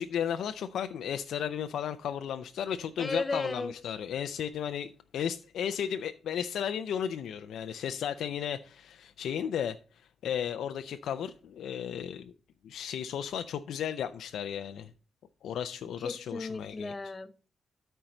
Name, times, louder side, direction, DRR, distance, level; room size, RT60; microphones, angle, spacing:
voice 1, 0.0-12.3 12.6-14.9 15.4-16.9, left 8 dB, 85° left, 0.4 m, -34 dB
voice 2, 3.0-3.7 16.0-17.5, left 3 dB, 25° left, 0.6 m, -35 dB
13.0 x 4.5 x 3.9 m
cardioid pair, 125°, 0 cm